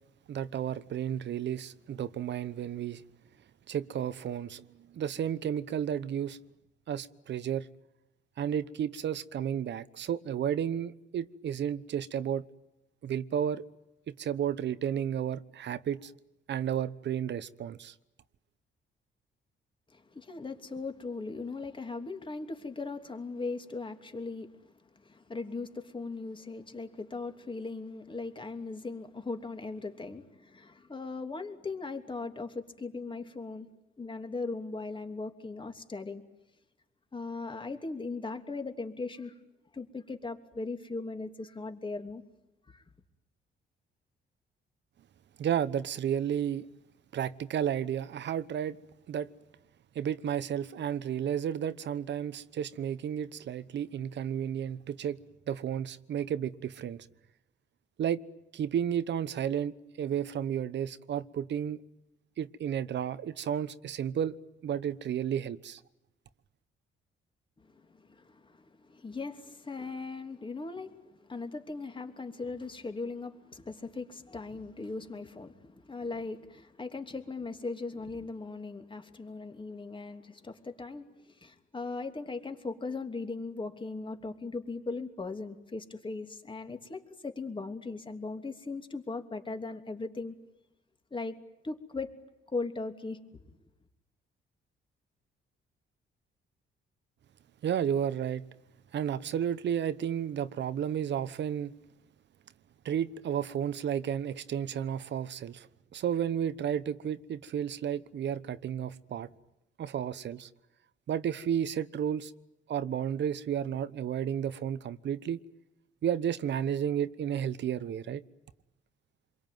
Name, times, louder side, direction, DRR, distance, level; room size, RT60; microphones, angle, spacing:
voice 1, 0.3-3.0 3.7-4.6 4.9-6.4 6.9-7.7 8.4-12.4 13.0-13.6 14.1-16.1 16.5-17.9 45.4-46.7 47.1-48.8 49.1-49.3 49.9-55.2 55.5-57.1 58.0-58.2 58.5-61.8 62.4-64.3 64.6-65.8 97.6-98.4 98.9-101.7 102.8-105.7 105.9-109.3 109.8-110.5 111.1-112.3 112.7-115.4 116.0-118.2, right 9 dB, 65° right, 1.1 m, -32 dB
voice 2, 19.9-33.7 34.0-36.2 37.1-39.4 39.7-42.2 42.7-42.8 67.6-90.4 91.1-91.3 91.6-92.1 92.5-93.2, left 3 dB, 25° left, 3.0 m, -39 dB
28.0 x 22.5 x 9.4 m
cardioid pair, 90°, 20 cm